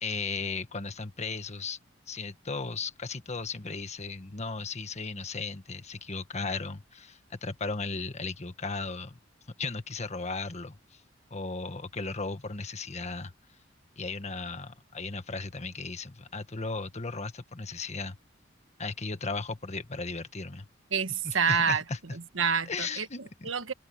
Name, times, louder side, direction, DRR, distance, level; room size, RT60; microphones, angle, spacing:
voice 1, 0.0-1.8 2.1-9.2 9.6-11.0 11.3-13.3 14.0-18.2 18.8-20.7 21.2-22.0 22.7-23.5, left 4 dB, 35° left, 1.5 m, -36 dB
voice 2, 20.9-21.8 22.3-23.1 23.4-23.7, right 6 dB, 80° right, 1.4 m, -27 dB
head